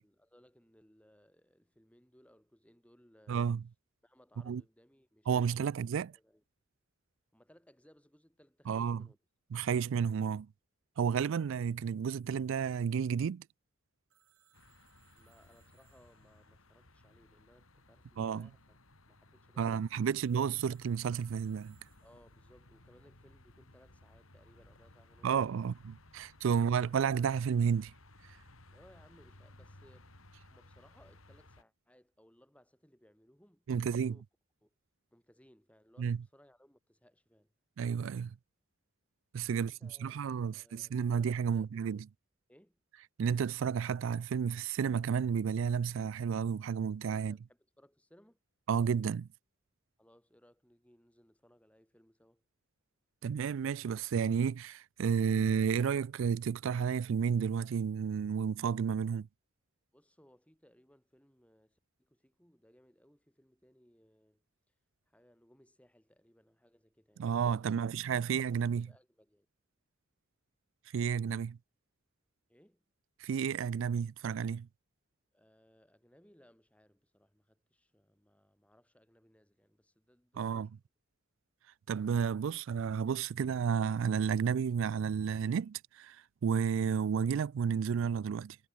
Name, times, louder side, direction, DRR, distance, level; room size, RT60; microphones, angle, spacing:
voice 1, 0.0-3.5 4.0-5.3 6.2-6.4 7.3-9.2 15.1-18.8 19.1-20.2 22.0-25.7 28.7-30.1 30.5-34.2 34.6-34.7 35.1-37.5 39.5-41.0 41.4-41.7 42.5-42.8 47.1-48.4 50.0-52.4 59.9-64.4 65.1-67.9 68.8-69.5 72.5-72.8 75.3-80.7, equal, 5° left, 4.2 m, -65 dB
voice 2, 3.3-3.6 4.5-4.6 5.3-6.1 8.7-9.1 9.5-10.5 11.0-13.4 18.2-18.5 19.6-21.8 25.2-27.9 33.7-34.2 36.0-36.2 37.8-38.4 39.3-42.1 43.2-47.4 48.7-49.3 53.2-59.3 67.2-68.9 70.9-71.6 73.2-74.7 80.4-80.7 81.9-86.2 86.4-88.6, right 7 dB, 65° right, 0.3 m, -31 dB
Telephone, 14.1-17.7 20.1-22.6, right 10 dB, 80° right, 4.3 m, -71 dB
sound 1, 14.5-31.6, left 1 dB, 80° left, 4.8 m, -60 dB
head